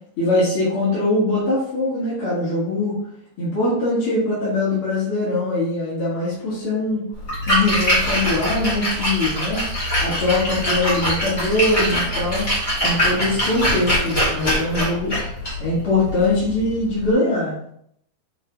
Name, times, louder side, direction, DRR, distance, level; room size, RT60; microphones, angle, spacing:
voice 1, 0.2-2.9 3.4-7.0 7.5-9.6 10.0-12.4 12.8-15.1 15.6-17.5, left 2 dB, 40° left, -10 dB, 2.8 m, -22 dB
Splash splatter, 7.2-17.1, equal, 15° left, 2.7 m, -23 dB
7.5 x 5.3 x 3.8 m, 0.70 s
omnidirectional pair, 4.5 m